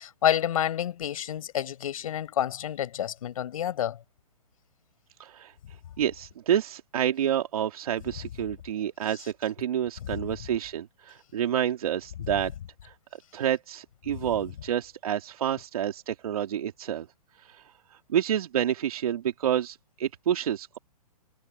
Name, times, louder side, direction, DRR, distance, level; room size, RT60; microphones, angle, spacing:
voice 1, 0.0-4.0 10.1-10.3 14.1-14.3, left 10 dB, 60° left, 5.5 m, -29 dB
voice 2, 5.2-5.5 6.0-12.5 12.8-12.9 13.3-17.1 17.5-17.6 18.1-20.8, right 10 dB, 65° right, 2.6 m, -28 dB
hypercardioid pair, 140°, 20 cm